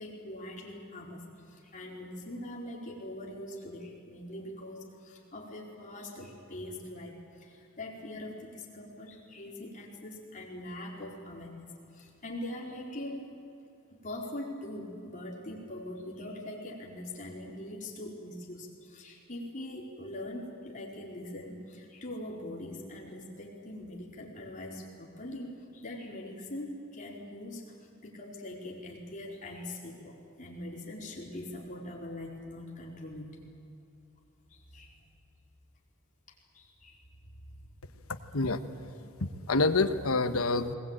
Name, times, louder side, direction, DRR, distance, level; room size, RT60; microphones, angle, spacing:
voice 1, 0.0-13.3 14.0-27.8 28.0-33.4 34.5-35.0 36.5-37.0, left 1 dB, 35° left, -3 dB, 4.4 m, -42 dB
voice 2, 39.2-40.7, left 3 dB, 80° left, 9 dB, 1.2 m, -27 dB
20.5 x 20.5 x 8.9 m, 2.9 s
head